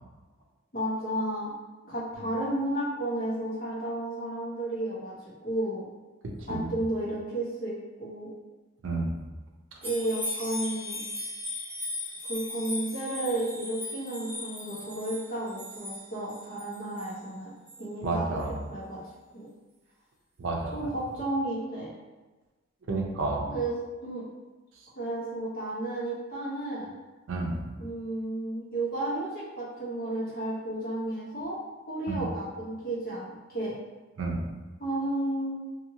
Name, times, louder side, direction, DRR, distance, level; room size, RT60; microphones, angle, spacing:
voice 1, 0.7-1.5 1.8-5.9 6.5-8.3 9.8-11.0 12.3-17.5 17.8-19.0 19.3-19.5 20.7-21.9 23.5-23.7 24.0-24.2 24.9-26.9 27.8-31.6 31.9-33.7 34.8-35.6, right 1 dB, 45° left, -7 dB, 1.0 m, -32 dB
voice 2, 6.4-6.7 8.8-9.1 18.0-18.5 20.4-20.9 22.9-23.5 27.3-27.6 32.1-32.2 34.2-34.5, right 2 dB, 65° right, 0 dB, 0.5 m, -30 dB
sound 1, 9.8-17.1 17.7-17.8, left 1 dB, 10° right, 0.9 m, -37 dB
2.7 x 2.6 x 2.8 m, 1.2 s
head